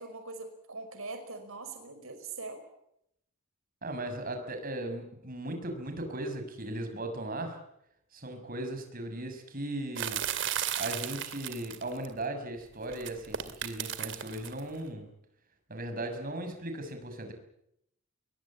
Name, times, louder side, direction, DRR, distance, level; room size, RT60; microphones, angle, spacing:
voice 1, 0.0-2.6, right 3 dB, 85° right, 6 dB, 5.2 m, -42 dB
voice 2, 3.8-7.6 8.1-10.2 10.8-15.1 15.7-17.3, right 1 dB, 45° right, 6 dB, 6.0 m, -37 dB
sound 1, 10.0-12.1 12.9-14.6, right 9 dB, 65° right, 2.4 m, -34 dB
22.5 x 22.5 x 8.6 m, 0.77 s
head